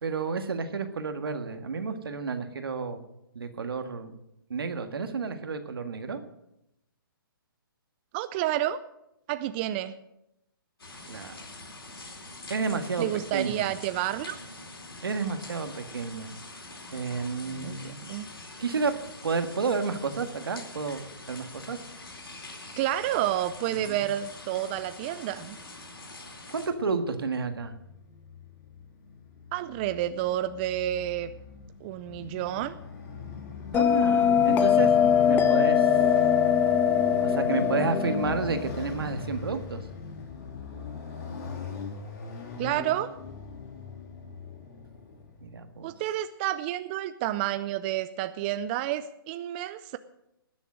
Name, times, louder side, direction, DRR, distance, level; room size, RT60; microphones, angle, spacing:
voice 1, 0.0-3.0 3.3-4.2 4.5-6.2 11.1-11.4 12.5-13.8 15.0-16.3 16.9-18.0 18.6-19.0 19.2-21.8 23.7-24.1 26.5-27.7 33.7-35.0 35.3-36.0 37.2-39.9 45.4-45.9, right 4 dB, 80° right, 7 dB, 1.7 m, -31 dB
voice 2, 8.1-8.8 9.3-10.0 13.0-14.4 17.5-18.3 22.8-25.6 29.5-31.3 31.8-32.8 42.6-43.1 45.8-50.0, right 13 dB, 25° right, 12 dB, 0.4 m, -30 dB
sound 1, 10.8-26.7, left 2 dB, 85° left, 4.0 m, -45 dB
Motorcycle, 27.5-45.6, left 4 dB, 40° left, 3.1 m, -39 dB
Bell, 33.7-38.8, left 8 dB, 15° left, 0.8 m, -22 dB
19.5 x 7.1 x 6.3 m, 0.84 s
hypercardioid pair, 145°, 12 cm